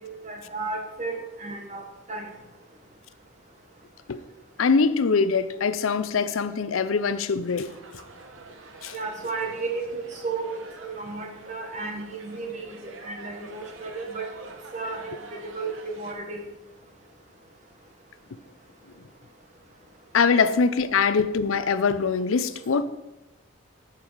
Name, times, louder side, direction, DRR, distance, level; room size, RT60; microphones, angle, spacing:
voice 1, 0.0-2.3 8.9-10.5 10.8-12.8 13.0-16.4, right 3 dB, 35° right, 1.4 m, -34 dB
voice 2, 4.6-7.7 8.8-8.9 20.1-22.8, left 5 dB, 85° left, 0.5 m, -23 dB
sound 1, 7.5-16.1, right 3 dB, 85° right, 1.1 m, -47 dB
8.6 x 7.4 x 4.7 m
head